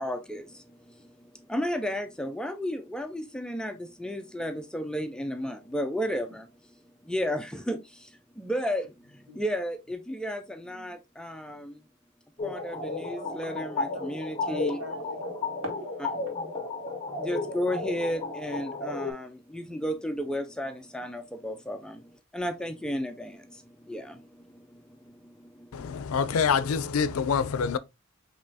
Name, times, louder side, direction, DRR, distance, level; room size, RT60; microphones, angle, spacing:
voice 1, 0.0-6.7 7.0-11.8 12.4-14.8 16.0-16.1 17.2-25.9, equal, 5° left, 0.3 m, -34 dB
sound 1, 12.4-19.1, left 3 dB, 25° left, 0.7 m, -33 dB
voice 2, 13.0-13.6 13.9-14.1 14.4-15.9 17.1-17.2, equal, 65° right, 1.8 m, -42 dB
voice 3, 25.7-27.8, left 6 dB, 85° left, 0.4 m, -26 dB
5.2 x 3.0 x 2.7 m
head